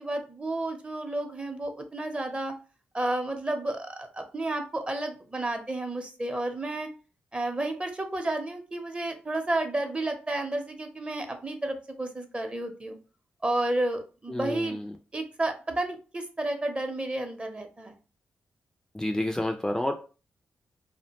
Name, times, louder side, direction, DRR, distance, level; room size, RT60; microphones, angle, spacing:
voice 1, 0.0-2.5 2.9-6.9 7.3-13.0 13.4-14.8 15.1-18.0, right 2 dB, 25° right, 5 dB, 0.7 m, -31 dB
voice 2, 14.3-14.9 18.9-19.9, left 1 dB, 10° left, 5 dB, 0.3 m, -29 dB
2.5 x 2.1 x 2.8 m, 0.35 s
supercardioid pair, 50°, 5 cm